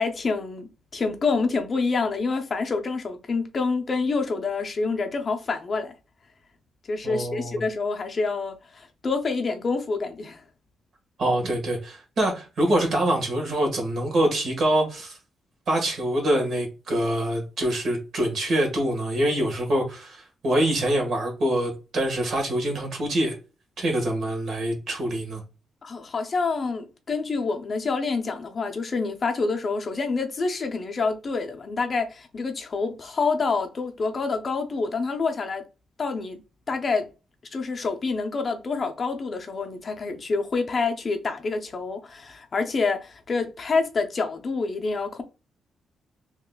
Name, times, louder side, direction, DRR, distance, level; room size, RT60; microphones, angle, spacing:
voice 1, 0.0-5.9 6.9-10.4 25.8-35.6 36.0-36.4 36.7-37.1 37.5-45.2, left 4 dB, 35° left, 0.5 m, -27 dB
voice 2, 7.0-7.6 11.2-15.2 15.7-23.3 23.8-25.4, right 1 dB, 55° right, 1.4 m, -25 dB
3.7 x 2.9 x 2.2 m
cardioid pair, 140°, 0 cm